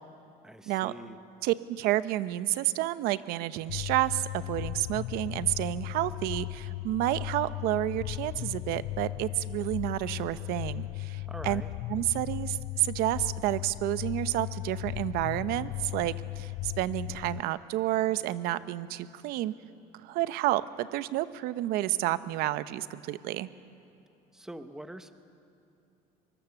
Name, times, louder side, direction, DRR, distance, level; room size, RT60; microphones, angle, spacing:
voice 1, 0.4-1.2 11.3-11.7 24.3-25.1, right 1 dB, 5° right, 9 dB, 1.0 m, -44 dB
voice 2, 1.4-11.6 11.9-19.5 20.0-23.5, right 15 dB, 75° right, 14 dB, 0.9 m, -30 dB
sound 1, 3.7-17.4, left 19 dB, 60° left, 0.4 m, -37 dB
24.0 x 24.0 x 7.1 m, 2.8 s
cardioid pair, 130°, 16 cm